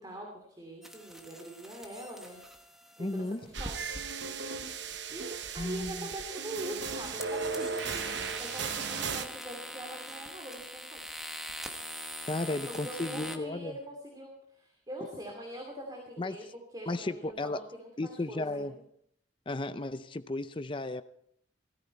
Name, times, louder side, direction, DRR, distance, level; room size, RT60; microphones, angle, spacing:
voice 1, 0.0-2.4 3.0-4.0 5.1-11.0 12.4-16.4 16.7-18.7, right 1 dB, 20° right, 1 dB, 2.6 m, -43 dB
sound 1, 0.8-13.4, equal, ahead, 1.2 m, -44 dB
voice 2, 3.0-3.4 5.6-6.1 12.3-13.8 16.2-16.4 16.9-17.6 18.0-18.8 19.5-21.0, left 2 dB, 25° left, 12 dB, 0.5 m, -34 dB
sound 2, 3.5-9.2, right 5 dB, 70° right, 1.0 m, -36 dB
17.5 x 14.5 x 4.4 m, 0.68 s
head